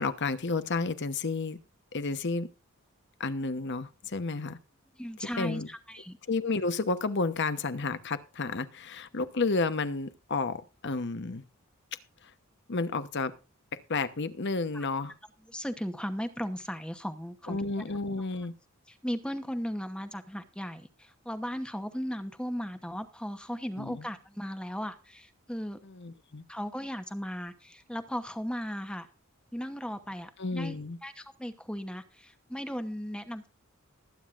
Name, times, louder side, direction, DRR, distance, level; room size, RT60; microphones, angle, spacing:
voice 1, 0.0-1.6 1.9-2.5 3.2-4.6 5.4-5.7 6.3-11.4 12.2-12.3 12.7-13.3 13.7-15.1 17.5-18.5 23.8-24.1 25.8-26.4 30.4-31.0, left 3 dB, 55° left, 12 dB, 1.0 m, -31 dB
voice 2, 5.0-6.2 14.7-14.9 15.5-17.6 18.9-25.8 26.5-29.1 29.5-33.5, equal, 5° left, 8 dB, 1.0 m, -37 dB
20.0 x 9.4 x 2.5 m, 0.33 s
head